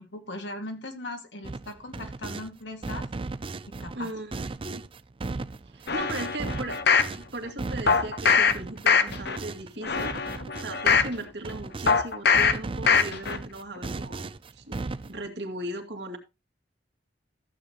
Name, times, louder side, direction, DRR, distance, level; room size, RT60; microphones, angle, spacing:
voice 1, 0.0-3.1 3.8-4.1, left 1 dB, 85° left, 5 dB, 2.3 m, -38 dB
sound 1, 1.4-2.5 2.8-12.0 12.3-15.3, right 3 dB, 30° right, 0.5 m, -36 dB
voice 2, 3.9-4.8 5.7-6.9 7.3-10.1 10.6-14.8 15.1-16.2, right 1 dB, 70° right, 4 dB, 2.3 m, -37 dB
sound 2, 5.9-7.1 7.9-8.5 8.9-9.4 9.8-11.1 11.9-12.5 12.9-13.4 13.8-13.9, left 5 dB, 65° left, 1.1 m, -22 dB
14.5 x 8.0 x 3.1 m, 0.25 s
head